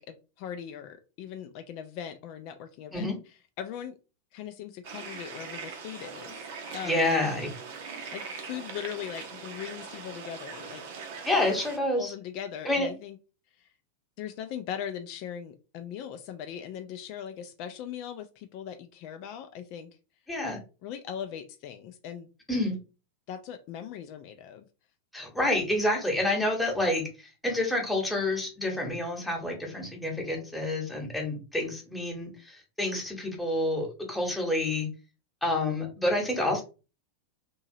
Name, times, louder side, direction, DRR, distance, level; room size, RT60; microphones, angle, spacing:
voice 1, 0.0-3.1 3.6-3.9 4.3-7.1 7.9-10.8 12.0-13.2 13.6-13.7 14.2-19.9 20.8-22.3 23.3-24.7, left 9 dB, 45° left, 7 dB, 0.3 m, -40 dB
sound 1, 4.8-11.8, right 5 dB, 50° right, 0.6 m, -41 dB
voice 2, 6.8-7.5 11.2-12.1 12.6-12.9 20.3-20.6 22.5-22.7 25.1-34.9 35.4-36.6, left 1 dB, 5° left, -1 dB, 1.1 m, -28 dB
2.8 x 2.7 x 2.7 m, 0.32 s
figure-of-eight pair, 90°, 0 cm